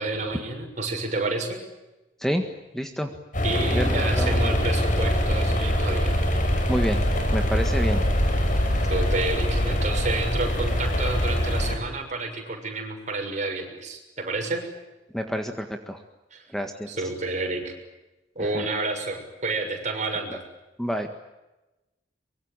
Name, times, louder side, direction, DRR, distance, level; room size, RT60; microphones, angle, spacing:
voice 1, 0.0-1.6 3.4-6.2 8.9-14.6 16.3-16.5 16.9-17.7 18.3-20.4, right 2 dB, 40° right, 3 dB, 6.6 m, -30 dB
voice 2, 2.7-3.1 3.7-4.6 6.7-7.0 7.3-8.0 15.1-16.0 16.5-16.9 18.5-18.6 20.8-21.1, equal, ahead, 5 dB, 1.7 m, -28 dB
sound 1, 3.3-11.8, equal, 45° left, 6.0 m, -23 dB
24.5 x 23.5 x 9.1 m, 1.0 s
head